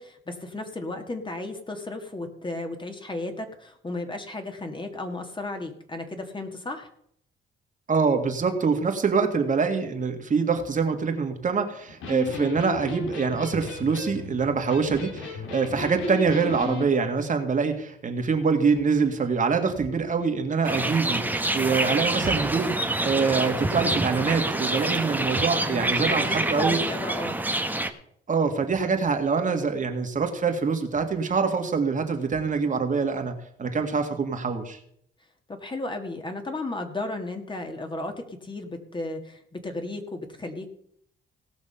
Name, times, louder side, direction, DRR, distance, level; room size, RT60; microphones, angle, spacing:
voice 1, 0.0-6.9 25.6-27.3 35.5-40.7, left 2 dB, 25° left, 5 dB, 2.0 m, -34 dB
voice 2, 7.9-26.9 28.3-34.8, right 5 dB, 40° right, 5 dB, 1.9 m, -25 dB
Electric guitar, 11.9-16.9, left 4 dB, 80° left, 2.7 m, -35 dB
sound 1, 20.6-27.9, right 2 dB, 10° right, 1.1 m, -26 dB
17.5 x 6.0 x 5.7 m, 0.69 s
cardioid pair, 90°, 20 cm